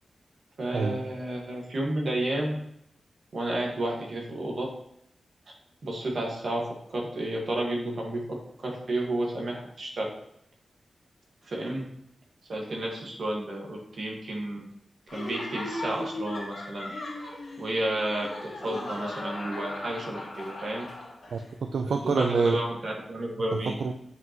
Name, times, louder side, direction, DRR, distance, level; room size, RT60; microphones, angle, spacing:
voice 1, 0.6-2.5 3.3-4.7 5.8-8.4 8.6-10.1 11.4-11.9 12.5-14.6 15.1-16.9 17.6-20.8 21.9-23.7, right 1 dB, 50° right, -1 dB, 1.5 m, -31 dB
Laughter, 15.1-21.4, left 1 dB, 55° left, 2.0 m, -37 dB
voice 2, 21.3-22.6 23.5-23.9, right 4 dB, 70° right, 4 dB, 0.4 m, -27 dB
7.5 x 5.5 x 3.0 m, 0.75 s
wide cardioid pair, 170°, 0 cm